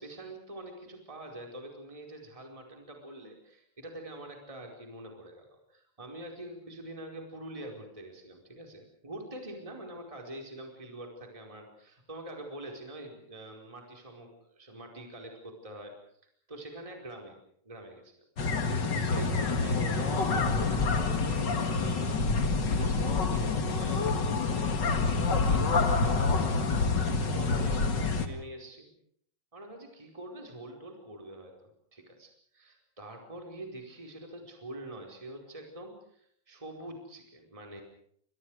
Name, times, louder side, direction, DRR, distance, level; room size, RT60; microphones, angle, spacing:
voice 1, 0.0-15.9 16.5-17.4 17.6-18.1 18.7-25.7 26.0-26.8 27.3-28.9 29.5-37.8, right 1 dB, 10° right, 2 dB, 4.6 m, -45 dB
sound 1, 18.4-28.3, left 4 dB, 35° left, 2.1 m, -27 dB
29.0 x 25.5 x 4.9 m, 0.65 s
omnidirectional pair, 4.0 m